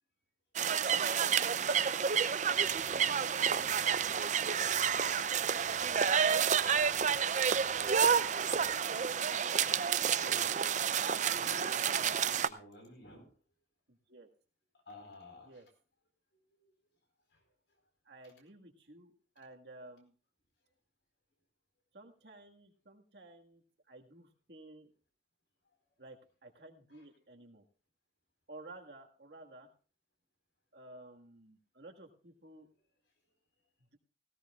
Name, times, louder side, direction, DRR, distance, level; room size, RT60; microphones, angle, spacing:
sound 1, 0.6-12.5, right 7 dB, 40° right, 0.5 m, -30 dB
sound 2, 2.4-8.7, equal, 10° left, 3.6 m, -64 dB
voice 1, 10.1-10.6 11.2-13.3 14.9-15.5, equal, 70° left, 4 dB, 4.6 m, -52 dB
voice 2, 13.9-14.3 15.4-15.7 18.1-20.1 21.9-23.6 23.9-24.9 26.0-27.6 28.5-29.7 30.7-32.7, right 2 dB, 65° right, 3 dB, 1.8 m, -54 dB
17.5 x 16.5 x 2.4 m, 0.36 s
head